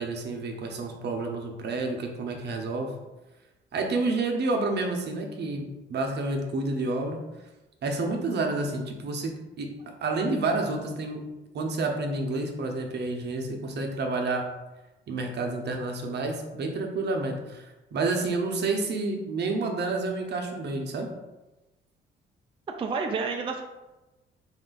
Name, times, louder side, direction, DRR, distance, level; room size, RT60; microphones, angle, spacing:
voice 1, 0.0-2.9 3.7-7.2 7.8-9.3 9.6-11.2 11.5-14.5 15.1-21.1, right 3 dB, 60° right, 3 dB, 0.7 m, -29 dB
voice 2, 22.7-23.6, right 4 dB, 25° right, 3 dB, 0.3 m, -29 dB
3.6 x 2.5 x 3.8 m, 1.1 s
cardioid pair, 90°, 20 cm